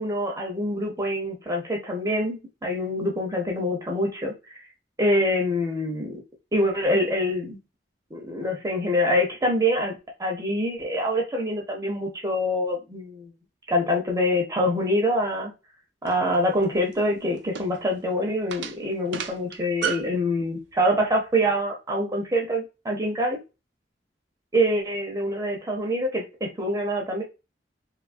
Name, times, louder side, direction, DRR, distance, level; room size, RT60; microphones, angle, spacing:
voice 1, 0.0-4.3 5.0-6.2 6.5-7.6 8.1-13.3 13.7-15.5 16.0-23.4 24.5-27.2, equal, 20° right, 0 dB, 0.6 m, -25 dB
sound 1, 16.1-20.2, right 8 dB, 75° right, 0.4 m, -34 dB
3.0 x 2.3 x 2.4 m, 0.28 s
head